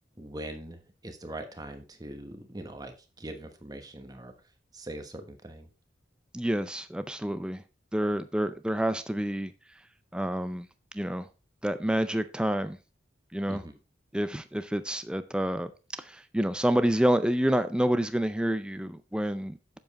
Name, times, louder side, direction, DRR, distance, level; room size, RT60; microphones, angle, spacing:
voice 1, 0.2-4.3 4.7-5.7 13.5-13.7, right 1 dB, 20° right, 7 dB, 1.2 m, -42 dB
voice 2, 6.3-7.6 7.9-9.5 10.1-10.7 10.9-11.3 11.6-12.8 13.3-13.6 14.1-15.7 16.0-19.8, right 1 dB, 5° right, 11 dB, 0.4 m, -28 dB
7.9 x 7.2 x 4.1 m, 0.31 s
head